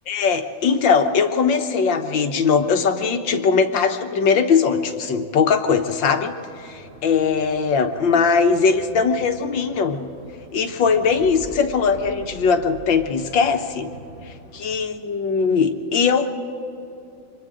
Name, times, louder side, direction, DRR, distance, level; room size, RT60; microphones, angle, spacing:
voice 1, 0.1-10.0 10.5-13.9 14.3-16.3, left 5 dB, 70° left, 6 dB, 1.8 m, -20 dB
sound 1, 6.5-14.8, right 1 dB, 40° right, 4.6 m, -43 dB
28.0 x 25.0 x 3.8 m, 2.8 s
omnidirectional pair, 2.1 m